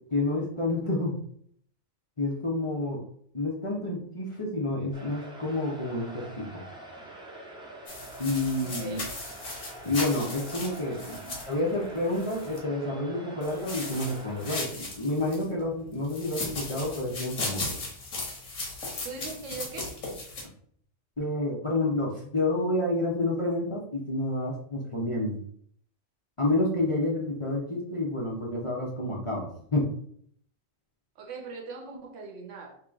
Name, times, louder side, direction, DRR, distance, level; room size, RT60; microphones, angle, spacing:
voice 1, 0.1-1.2 2.2-3.0 3.3-6.6 8.2-9.0 9.8-11.2 11.5-17.6 21.2-25.4 26.4-29.9, left 2 dB, 30° left, 0.8 m, -29 dB
sound 1, 4.9-14.6, right 2 dB, 5° right, 0.6 m, -45 dB
sound 2, 7.9-12.6 13.4-15.5 16.0-20.4, left 2 dB, 85° left, 1.5 m, -37 dB
voice 2, 8.6-9.1 11.2-11.4 19.0-20.0 31.2-32.8, right 4 dB, 70° right, 1.1 m, -40 dB
3.0 x 3.0 x 3.6 m
omnidirectional pair, 1.3 m